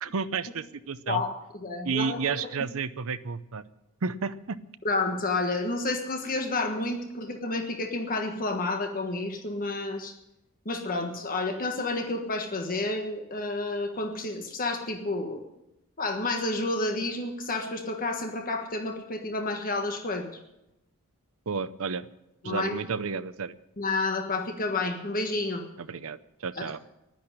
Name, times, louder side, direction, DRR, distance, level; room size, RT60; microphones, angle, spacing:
voice 1, 0.0-1.2 1.8-3.6 4.0-4.6 21.5-22.1 22.4-23.5 25.8-26.2 26.4-26.8, right 5 dB, 65° right, 13 dB, 0.7 m, -31 dB
voice 2, 1.6-2.4 4.8-10.1 10.6-15.4 16.0-20.3 22.4-22.8 23.8-25.6 26.6-26.7, left 2 dB, 40° left, 3 dB, 1.4 m, -30 dB
10.5 x 10.5 x 10.0 m, 0.90 s
head